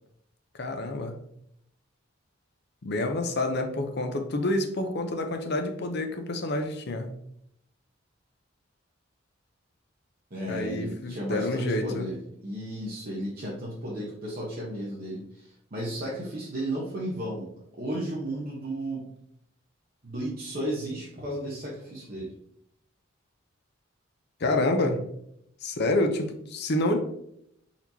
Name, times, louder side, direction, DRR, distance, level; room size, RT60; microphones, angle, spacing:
voice 1, 0.6-1.2 2.8-7.1 10.5-12.1 24.4-25.0 25.6-27.0, left 2 dB, 55° left, 6 dB, 0.6 m, -28 dB
voice 2, 10.3-19.1 20.0-22.3, right 1 dB, 45° right, -6 dB, 0.9 m, -34 dB
4.4 x 4.2 x 2.7 m, 0.74 s
head